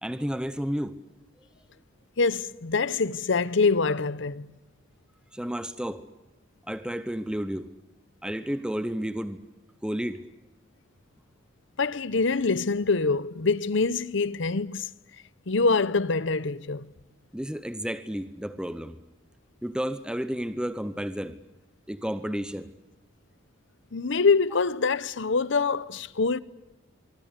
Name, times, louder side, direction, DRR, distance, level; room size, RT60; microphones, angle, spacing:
voice 1, 0.0-1.0 5.3-6.0 6.7-7.7 8.2-9.4 9.8-10.2 17.3-19.0 19.6-21.4 21.9-22.7, equal, 5° right, 0.8 m, -31 dB
voice 2, 2.2-4.5 11.8-14.9 15.5-16.9 23.9-26.4, left 4 dB, 65° left, 0.9 m, -25 dB
24.5 x 24.5 x 8.2 m
head